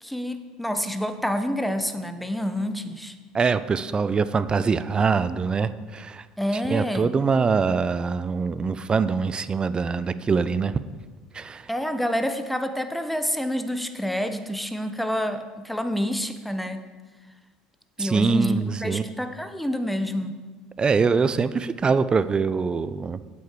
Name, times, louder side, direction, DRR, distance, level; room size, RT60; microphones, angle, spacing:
voice 1, 0.0-3.1 6.4-7.1 11.7-16.8 18.0-20.4, equal, ahead, 8 dB, 0.9 m, -28 dB
voice 2, 3.3-6.3 6.5-10.7 11.3-11.7 18.0-19.0 20.8-23.2, right 5 dB, 25° right, 14 dB, 0.5 m, -23 dB
8.5 x 7.9 x 4.7 m, 1.4 s
hypercardioid pair, 70°, 3 cm